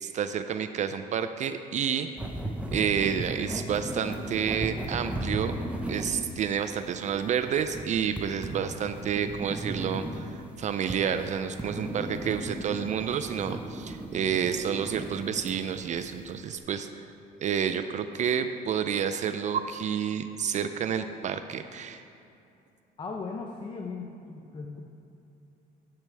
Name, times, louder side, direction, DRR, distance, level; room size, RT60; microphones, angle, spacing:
voice 1, 0.0-2.1 2.7-5.6 5.9-16.9 17.4-22.0, right 8 dB, 45° right, 9 dB, 0.4 m, -29 dB
sound 1, 2.2-16.4, right 1 dB, 5° right, 0.7 m, -37 dB
voice 2, 23.0-24.8, left 4 dB, 30° left, 2 dB, 0.7 m, -37 dB
10.5 x 7.6 x 3.4 m, 2.6 s
cardioid pair, 110°, 17 cm